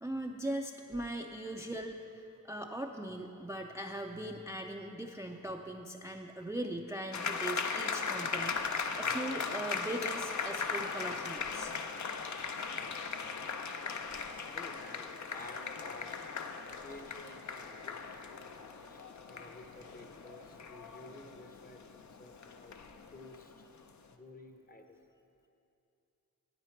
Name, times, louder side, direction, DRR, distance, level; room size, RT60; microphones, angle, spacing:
voice 1, 0.0-11.7 20.2-20.6, right 1 dB, 10° right, 3 dB, 0.4 m, -40 dB
sound 1, 7.1-23.8, left 5 dB, 55° left, 0.6 m, -38 dB
voice 2, 14.5-16.2 16.8-18.2 18.9-22.8 23.1-23.6 24.1-25.0, left 2 dB, 25° left, 5 dB, 0.8 m, -52 dB
9.0 x 8.9 x 4.5 m, 2.7 s
cardioid pair, 50°, 35 cm